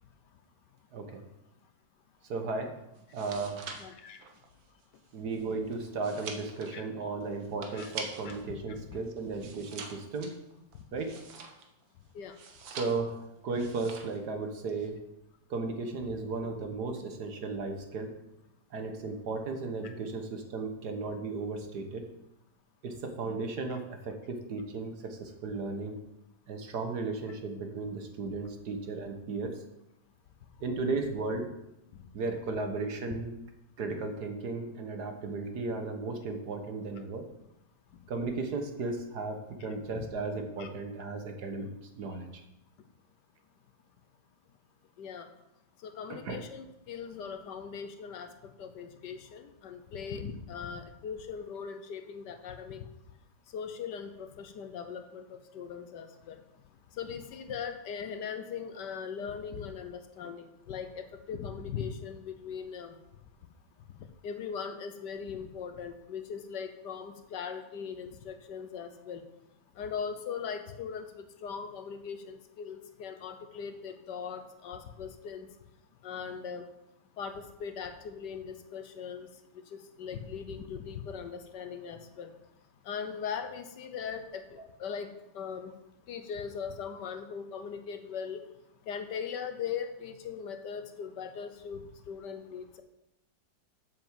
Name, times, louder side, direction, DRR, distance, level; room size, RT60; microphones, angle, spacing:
voice 1, 0.9-1.2 2.3-2.7 3.1-3.6 5.1-10.3 10.9-11.1 12.7-15.0 15.5-18.1 18.7-22.0 22.8-26.0 26.5-29.6 30.6-31.5 32.1-33.4 33.8-37.3 38.1-41.7 42.0-42.3 46.1-46.4, right 3 dB, 60° right, 5 dB, 1.7 m, -35 dB
sound 1, 3.0-8.5 8.8-11.8 12.3-13.2 13.5-14.2 14.5-14.9, right 5 dB, 85° right, 2.0 m, -45 dB
voice 2, 3.8-4.2 6.7-6.8 7.7-7.9 8.2-8.3 12.1-12.3 40.0-40.1 40.6-40.7 45.0-45.3 45.8-48.3 48.6-52.8 53.5-56.4 57.0-62.9 64.2-69.2 69.8-71.1 71.4-75.5 76.0-76.6 77.2-79.3 79.7-82.3 82.9-85.7 86.1-88.4 88.9-91.8 92.1-92.8, left 6 dB, 65° left, 8 dB, 1.4 m, -39 dB
7.8 x 7.2 x 7.3 m, 0.87 s
omnidirectional pair, 2.1 m